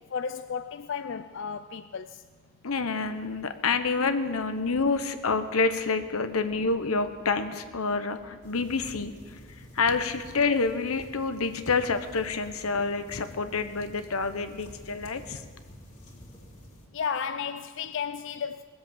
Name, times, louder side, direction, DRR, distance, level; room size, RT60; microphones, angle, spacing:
voice 1, 0.0-2.2 16.9-18.6, left 6 dB, 60° left, 0.4 m, -33 dB
voice 2, 2.6-9.4 9.7-15.4, left 4 dB, 90° left, 1.0 m, -28 dB
sound 1, 8.4-16.9, equal, 30° left, 2.7 m, -49 dB
20.5 x 7.8 x 6.9 m
head